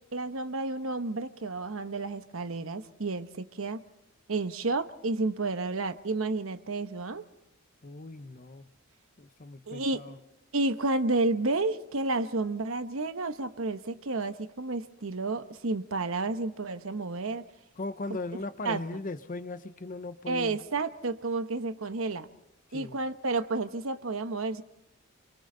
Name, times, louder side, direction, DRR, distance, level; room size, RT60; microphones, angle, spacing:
voice 1, 0.1-3.8 4.3-7.2 9.7-10.0 10.5-17.4 18.6-18.8 20.3-22.3 22.7-24.6, right 3 dB, 75° right, 10 dB, 1.0 m, -31 dB
voice 2, 7.8-8.7 9.2-10.2 17.7-20.7 22.7-23.0, left 3 dB, 40° left, 13 dB, 0.8 m, -38 dB
28.0 x 23.5 x 3.9 m, 0.89 s
head